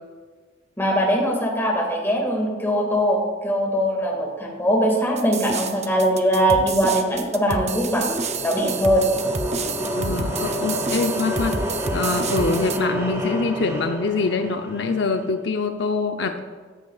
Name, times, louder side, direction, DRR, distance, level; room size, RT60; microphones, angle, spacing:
voice 1, 0.8-9.1, equal, 10° left, -1 dB, 2.0 m, -21 dB
sound 1, 5.2-12.8, right 4 dB, 35° right, 0.6 m, -30 dB
sound 2, 7.6-15.3, equal, 15° right, 1.8 m, -29 dB
voice 2, 10.0-11.6 11.9-16.4, left 4 dB, 65° left, 6 dB, 0.6 m, -24 dB
14.5 x 9.9 x 2.4 m, 1.5 s
head